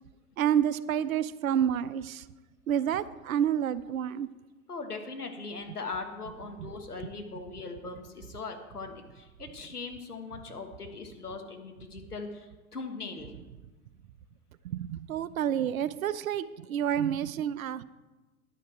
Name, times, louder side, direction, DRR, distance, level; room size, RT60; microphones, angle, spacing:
voice 1, 0.4-2.2 2.7-4.3 6.6-6.7 14.6-17.8, right 9 dB, 65° right, 16 dB, 0.6 m, -29 dB
voice 2, 4.7-13.3, left 4 dB, 85° left, 4 dB, 1.6 m, -40 dB
11.0 x 9.3 x 4.5 m, 1.1 s
figure-of-eight pair, 95°, 44 cm